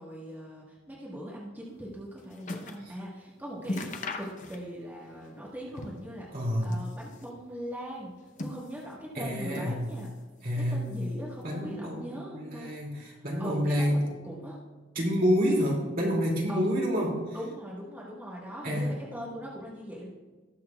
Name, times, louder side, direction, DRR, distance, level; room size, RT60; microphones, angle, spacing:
voice 1, 0.0-8.1 8.4-10.1 10.5-12.7 13.4-14.6 16.5-16.8 17.3-20.1, equal, 10° right, -5 dB, 1.3 m, -40 dB
sound 1, 1.7-2.9 3.2-3.3 3.6-4.9 5.2-6.2 6.5-7.4 8.0-9.0 9.5-10.2 10.5-11.3 12.0-12.1, left 2 dB, 40° left, 0.7 m, -40 dB
voice 2, 6.3-6.7 9.1-9.9 10.4-10.9 11.4-14.1 14.9-17.1 18.6-19.0, equal, 45° right, -2 dB, 2.4 m, -28 dB
19.0 x 6.5 x 2.3 m, 1.3 s
head